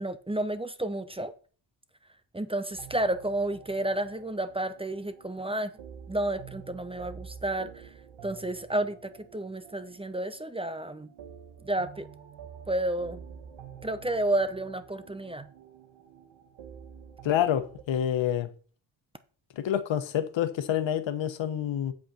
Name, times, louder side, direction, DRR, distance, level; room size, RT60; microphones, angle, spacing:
voice 1, 0.0-1.3 2.3-5.7 6.1-7.9 8.2-11.1 11.6-12.1 12.7-13.2 13.8-15.5, right 1 dB, 10° right, 0.8 m, -31 dB
sound 1, 2.7-17.8, right 7 dB, 80° right, 1.5 m, -49 dB
voice 2, 17.2-18.5 19.5-21.9, left 10 dB, 80° left, 1.2 m, -27 dB
8.3 x 7.8 x 4.4 m
cardioid pair, 105°, 45 cm